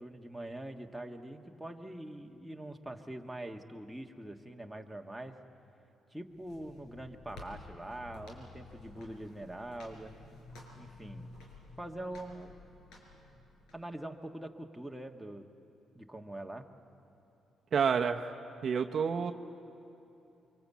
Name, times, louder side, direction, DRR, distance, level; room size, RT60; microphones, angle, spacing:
voice 1, 0.0-5.3 6.1-10.2 10.8-11.3 11.8-12.5 13.7-15.5 15.9-16.7, right 1 dB, 5° right, 2 dB, 1.5 m, -44 dB
sound 1, 6.3-13.7, left 3 dB, 85° left, 4.9 m, -52 dB
voice 2, 17.7-18.3 18.6-19.3, right 6 dB, 55° right, 5 dB, 0.8 m, -29 dB
24.5 x 23.5 x 8.4 m, 2.8 s
cardioid pair, 90°, 0 cm